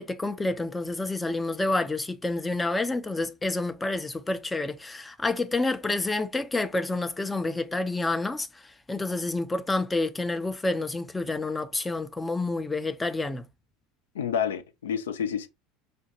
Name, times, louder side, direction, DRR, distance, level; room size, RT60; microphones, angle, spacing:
voice 1, 0.0-8.5 8.9-13.4, left 2 dB, 15° left, 0.4 m, -28 dB
voice 2, 14.1-15.5, left 8 dB, 75° left, 0.4 m, -29 dB
5.0 x 2.1 x 2.9 m
figure-of-eight pair, 75°, 0 cm